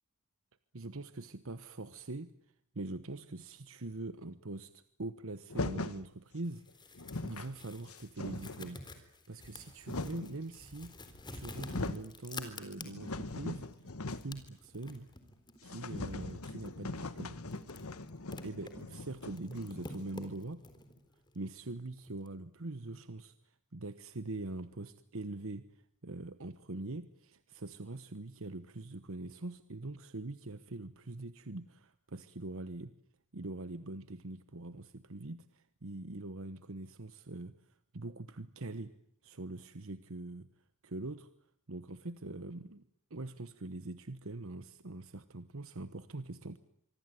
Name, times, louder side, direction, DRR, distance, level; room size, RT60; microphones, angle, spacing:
voice 1, 0.7-2.3 2.7-13.7 14.2-15.1 15.6-17.4 18.4-20.6 21.3-25.7 26.0-32.9 33.3-37.5 37.9-39.0 39.2-40.5 40.8-41.3 41.7-46.6, right 2 dB, 65° right, 12 dB, 1.1 m, -43 dB
sound 1, 5.5-6.0 6.7-6.8 6.9-7.5 7.9-8.7 9.4-10.4 11.1-11.2 11.5-12.1 12.5-14.5 14.7-14.8 15.1-15.2 15.6-20.1, left 2 dB, 85° left, 1.5 m, -41 dB
sound 2, 6.4-13.3 13.7-22.3, left 2 dB, 20° left, 3.9 m, -50 dB
25.0 x 25.0 x 9.3 m, 0.70 s
head